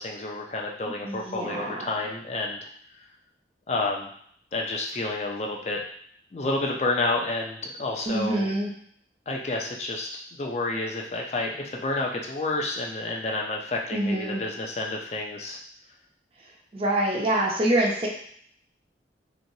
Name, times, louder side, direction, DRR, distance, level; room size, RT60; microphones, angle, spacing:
voice 1, 0.0-2.6 3.7-4.1 4.5-5.8 6.3-8.5 9.3-15.6, left 2 dB, 40° left, 0 dB, 0.4 m, -30 dB
voice 2, 1.0-1.8 8.1-8.7 13.9-14.4 16.7-18.1, right 1 dB, 35° right, -2 dB, 0.5 m, -25 dB
3.0 x 3.0 x 2.7 m, 0.63 s
head